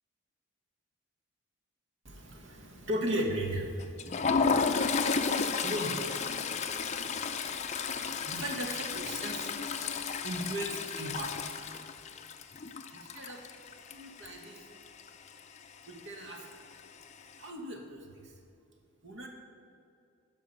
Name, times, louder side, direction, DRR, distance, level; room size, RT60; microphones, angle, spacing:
voice 1, 2.0-7.7 8.2-9.7 10.1-11.3 12.9-13.4 13.9-14.6 15.9-16.5 17.4-18.3 19.0-19.3, equal, 60° right, 2 dB, 1.3 m, -38 dB
Toilet flush, 3.8-14.6 14.9-15.1 15.4-15.6 16.5-17.0, left 5 dB, 35° left, 0.4 m, -32 dB
11.0 x 5.7 x 5.2 m, 2.5 s
head